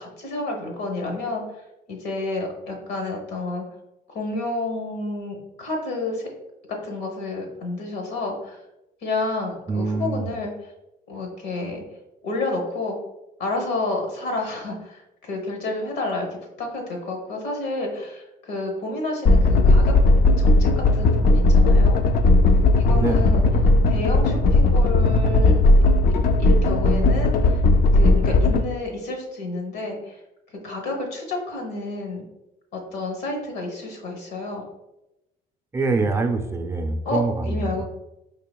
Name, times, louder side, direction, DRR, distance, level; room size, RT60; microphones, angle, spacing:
voice 1, 0.0-1.4 1.9-3.7 4.1-6.3 6.7-8.6 9.0-10.7 11.1-11.8 12.2-13.0 13.4-19.9 20.4-22.0 22.8-23.4 23.9-25.5 26.4-27.5 27.9-30.2 30.6-32.2 32.7-34.6 37.0-37.9, left 2 dB, 80° left, 2 dB, 1.0 m, -30 dB
voice 2, 9.7-10.3 23.0-23.3 35.7-37.9, right 3 dB, 15° right, 3 dB, 0.5 m, -25 dB
sound 1, 19.3-28.6, left 2 dB, 60° left, 0.4 m, -17 dB
4.8 x 2.9 x 2.3 m, 0.93 s
cardioid pair, 110°, 17 cm